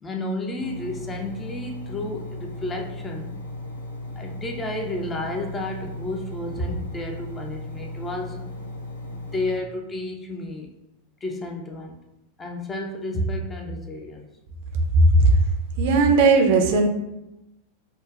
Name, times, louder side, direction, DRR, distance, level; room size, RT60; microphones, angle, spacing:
voice 1, 0.0-3.4 4.2-8.5 9.1-10.7 11.2-12.0 12.4-14.3, left 1 dB, 20° left, 3 dB, 0.5 m, -31 dB
Engine, 0.6-9.6, left 1 dB, 75° left, 0.5 m, -36 dB
voice 2, 15.8-16.9, right 4 dB, 50° right, 3 dB, 0.5 m, -17 dB
5.0 x 2.2 x 2.3 m, 0.92 s
figure-of-eight pair, 90°, 0 cm